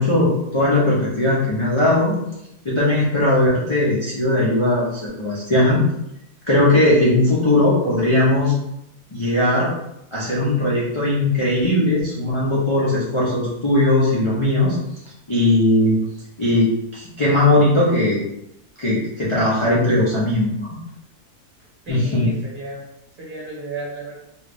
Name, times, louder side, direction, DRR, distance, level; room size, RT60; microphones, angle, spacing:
voice 1, 0.0-2.1 2.6-5.8 6.5-8.5 9.1-9.7 10.1-14.8 15.3-16.0 16.4-18.2 18.8-20.8 21.9-22.3, left 1 dB, 40° left, -8 dB, 0.4 m, -18 dB
voice 2, 21.8-22.8 23.2-24.1, right 2 dB, 35° right, -5 dB, 1.2 m, -33 dB
3.1 x 2.4 x 3.4 m, 0.83 s
omnidirectional pair, 1.6 m